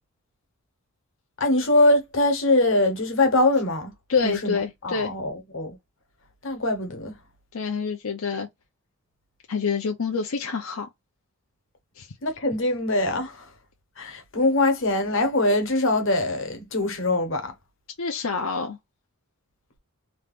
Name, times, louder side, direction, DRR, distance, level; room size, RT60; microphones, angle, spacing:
voice 1, 1.4-3.9 4.2-5.8 6.4-7.2 12.2-13.5 14.0-17.5, left 2 dB, 65° left, 1.2 m, -23 dB
voice 2, 4.1-5.1 7.5-8.5 9.5-10.9 12.0-12.1 18.0-18.8, left 5 dB, 85° left, 0.7 m, -27 dB
3.1 x 2.5 x 3.5 m
head